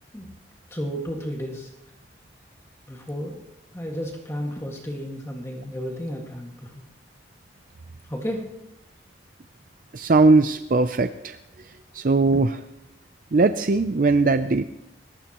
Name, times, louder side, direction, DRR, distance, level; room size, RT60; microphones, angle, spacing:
voice 1, 0.7-1.7 2.9-3.4 3.7-6.8 8.1-8.5, equal, 15° left, 0 dB, 1.9 m, -32 dB
voice 2, 9.9-11.4 11.9-12.6 13.3-14.7, right 3 dB, 50° right, 10 dB, 0.5 m, -19 dB
29.5 x 15.5 x 3.0 m, 0.86 s
head